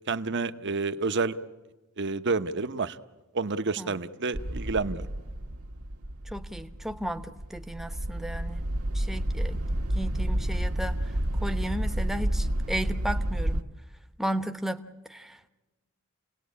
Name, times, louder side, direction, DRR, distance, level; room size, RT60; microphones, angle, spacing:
voice 1, 0.1-1.4 2.0-3.0 3.3-5.1, right 4 dB, 55° right, 10 dB, 1.0 m, -29 dB
sound 1, 4.3-13.6, right 1 dB, 90° right, 1.5 m, -30 dB
voice 2, 6.3-8.6 8.9-9.6 9.9-11.1 11.4-13.6 14.2-15.5, right 1 dB, ahead, 8 dB, 1.0 m, -34 dB
29.0 x 18.5 x 8.5 m, 1.2 s
head